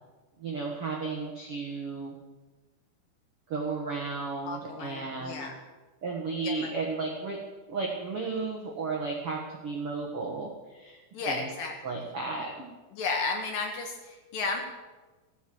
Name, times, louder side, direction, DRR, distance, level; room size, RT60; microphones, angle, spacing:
voice 1, 0.4-2.1 3.5-5.5 6.0-7.4 7.7-11.0 11.3-11.5 11.8-12.7, right 4 dB, 80° right, -1 dB, 1.2 m, -34 dB
voice 2, 4.4-5.5 6.4-6.7 11.1-11.7 12.9-14.6, left 4 dB, 65° left, 3 dB, 2.3 m, -33 dB
15.0 x 8.2 x 7.7 m, 1.2 s
omnidirectional pair, 5.1 m